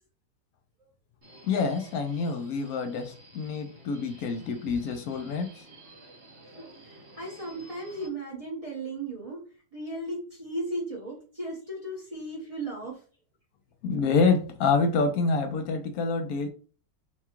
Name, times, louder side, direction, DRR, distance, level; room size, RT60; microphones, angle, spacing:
Subway metro underground, 1.2-8.1, right 2 dB, 65° right, 2.2 m, -52 dB
voice 1, 1.4-5.5 13.8-16.5, left 4 dB, 70° left, 0.9 m, -27 dB
voice 2, 6.9-9.4 9.7-13.0, right 1 dB, 25° right, 0.8 m, -36 dB
5.7 x 2.3 x 2.9 m
omnidirectional pair, 2.0 m